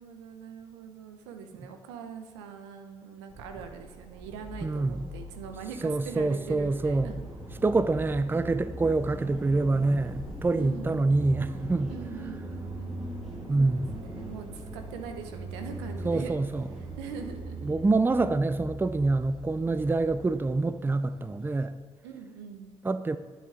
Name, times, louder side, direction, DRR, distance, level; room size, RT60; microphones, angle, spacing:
voice 1, 0.0-7.2 10.6-11.2 11.9-13.1 13.6-16.4 17.0-17.7 22.0-22.7, right 6 dB, 85° right, 0.8 m, -42 dB
sound 1, 3.3-20.4, right 2 dB, 40° right, 1.5 m, -42 dB
sound 2, 4.2-21.7, left 1 dB, ahead, 1.9 m, -45 dB
voice 2, 4.6-5.0 5.8-7.1 7.6-11.9 13.5-14.0 16.0-16.7 17.6-21.8 22.8-23.2, right 3 dB, 15° right, 0.5 m, -26 dB
9.5 x 8.2 x 3.7 m
hypercardioid pair, 50°, 14 cm